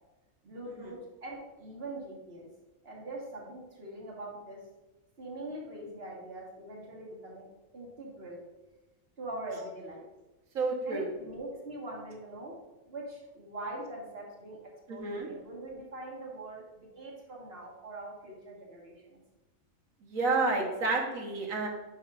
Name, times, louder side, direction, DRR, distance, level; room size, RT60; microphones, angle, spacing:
voice 1, 0.4-2.5 2.8-4.6 5.2-7.5 7.7-8.4 9.2-10.0 10.9-12.6 12.9-14.6 14.9-19.2, right 1 dB, 45° right, -2 dB, 1.9 m, -42 dB
voice 2, 10.5-11.1 14.9-15.3 20.0-21.7, right 3 dB, 75° right, 1 dB, 1.7 m, -30 dB
10.5 x 5.5 x 2.5 m, 1.1 s
omnidirectional pair, 1.4 m